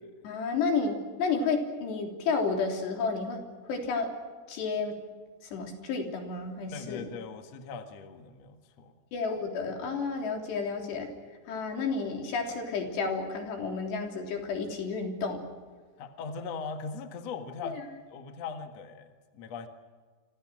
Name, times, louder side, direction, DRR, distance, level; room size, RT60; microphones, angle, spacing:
voice 1, 0.2-3.4 3.7-4.1 4.5-4.9 5.5-7.1 9.1-11.1 11.5-15.4 17.6-17.8, left 4 dB, 80° left, 3 dB, 5.5 m, -31 dB
voice 2, 6.7-9.0 16.0-17.8 18.1-19.7, left 5 dB, 50° left, 6 dB, 2.3 m, -40 dB
29.5 x 25.5 x 6.3 m, 1.5 s
omnidirectional pair, 4.8 m